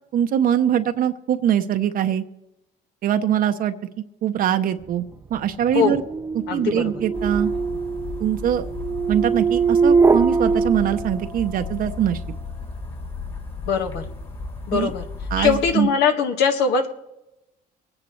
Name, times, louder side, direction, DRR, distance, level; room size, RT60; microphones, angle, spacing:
voice 1, 0.1-2.2 3.0-3.7 4.2-5.0 5.3-6.0 6.3-7.5 8.2-8.7 9.1-12.2 14.7-14.9 15.3-15.9, right 10 dB, 60° right, 7 dB, 0.7 m, -22 dB
sound 1, 5.1-11.6, right 5 dB, 15° right, 0.3 m, -22 dB
voice 2, 6.5-6.8 13.7-14.0 14.7-15.0 15.4-16.9, left 6 dB, 80° left, 4 dB, 1.7 m, -21 dB
sound 2, 7.1-15.7, left 4 dB, 35° left, 2.7 m, -34 dB
23.5 x 9.8 x 3.2 m, 0.92 s
cardioid pair, 110°, 17 cm